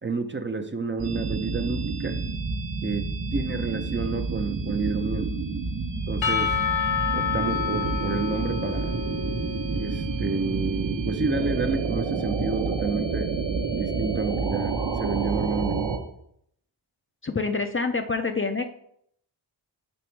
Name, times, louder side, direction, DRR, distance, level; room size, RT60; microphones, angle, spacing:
voice 1, 0.0-2.2 2.8-5.3 6.1-6.5 7.1-9.0 9.7-13.3 13.7-15.9, right 4 dB, 25° right, 6 dB, 0.6 m, -30 dB
sound 1, 1.0-16.0, right 4 dB, 60° right, 1.0 m, -29 dB
Percussion / Church bell, 6.2-10.6, left 8 dB, 70° left, 0.8 m, -29 dB
voice 2, 17.2-18.6, left 4 dB, 25° left, 6 dB, 0.5 m, -26 dB
5.3 x 4.1 x 4.6 m, 0.70 s
cardioid pair, 50°, 49 cm